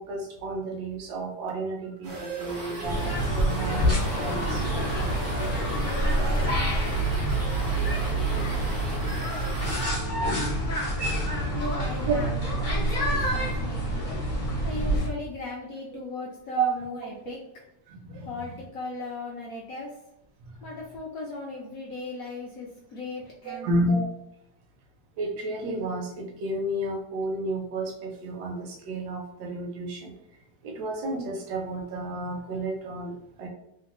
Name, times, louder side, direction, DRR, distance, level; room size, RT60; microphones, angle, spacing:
voice 1, 0.0-5.0 9.3-9.4 11.5-11.6 12.1-12.2 14.6-14.7 16.5-16.7 17.0-17.3 17.9-18.3 20.4-20.6 23.4-24.1 25.2-30.1 30.6-33.5, right 2 dB, 75° right, 1 dB, 1.1 m, -31 dB
sound 1, 2.0-9.9, right 2 dB, 50° right, 0.6 m, -37 dB
sound 2, 2.8-15.1, right 1 dB, 50° left, 0.6 m, -27 dB
voice 2, 11.5-14.0 14.6-17.4 18.3-20.0 20.6-23.9, left 3 dB, 70° left, -3 dB, 0.8 m, -37 dB
3.1 x 2.1 x 2.9 m, 0.84 s
omnidirectional pair, 1.9 m